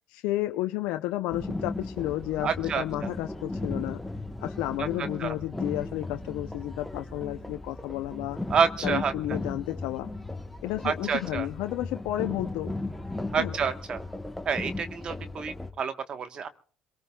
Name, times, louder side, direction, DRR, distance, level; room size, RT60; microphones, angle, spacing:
voice 1, 0.1-4.0 4.4-8.4 8.8-10.1 10.6-12.7 13.4-13.5, left 16 dB, 75° left, 7 dB, 0.6 m, -32 dB
sound 1, 1.3-15.7, left 2 dB, 5° left, 1.2 m, -36 dB
voice 2, 2.4-2.8 4.8-5.3 8.5-9.1 10.8-11.5 13.3-14.0 14.4-16.5, right 6 dB, 45° right, 9 dB, 1.2 m, -28 dB
26.5 x 18.0 x 2.3 m, 0.43 s
hypercardioid pair, 70°, 2 cm